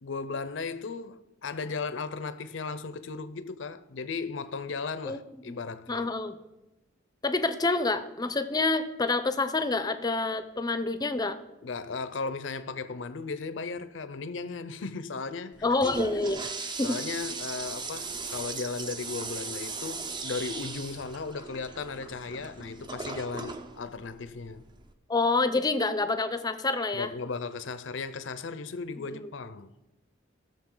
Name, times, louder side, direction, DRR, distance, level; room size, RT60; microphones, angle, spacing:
voice 1, 0.0-6.1 11.6-15.7 16.6-24.6 26.9-29.7, left 4 dB, 65° left, 0.6 m, -36 dB
voice 2, 5.9-6.4 7.2-11.4 15.6-16.4 16.8-17.0 25.1-27.1 29.0-29.3, left 3 dB, 20° left, 0.6 m, -27 dB
Toilet flush, 15.5-24.9, right 4 dB, 25° right, 0.6 m, -38 dB
17.5 x 6.7 x 3.8 m
head